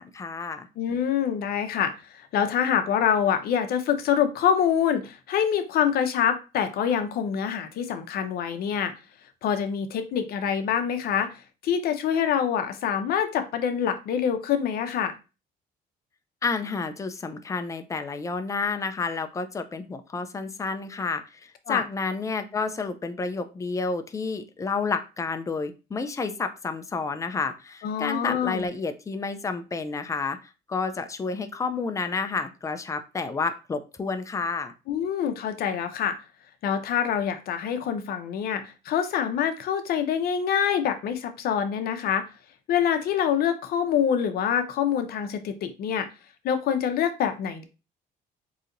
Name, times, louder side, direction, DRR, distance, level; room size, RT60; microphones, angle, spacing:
voice 1, 0.0-0.7 16.4-30.4 30.7-34.7, left 4 dB, 20° left, 8 dB, 0.4 m, -30 dB
voice 2, 0.8-8.9 9.4-11.4 11.6-15.1 21.7-21.8 27.8-28.7 34.9-36.2 36.6-42.3 42.7-46.1 46.4-47.6, left 8 dB, 65° left, 8 dB, 0.6 m, -25 dB
4.0 x 2.8 x 2.5 m, 0.31 s
cardioid pair, 110°, 17 cm